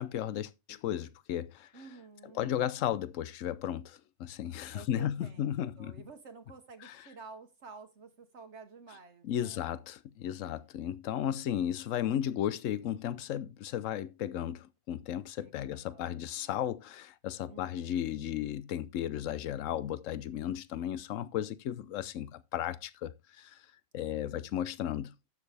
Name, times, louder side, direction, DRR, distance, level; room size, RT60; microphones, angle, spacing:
voice 1, 0.0-1.7 2.3-5.9 6.8-7.0 9.2-23.7 23.9-25.1, left 11 dB, 80° left, 1.0 m, -35 dB
voice 2, 1.7-2.5 4.7-9.7 15.4-16.5 17.5-18.0 24.1-24.5, right 4 dB, 65° right, 1.3 m, -52 dB
11.5 x 6.7 x 3.4 m
omnidirectional pair, 1.3 m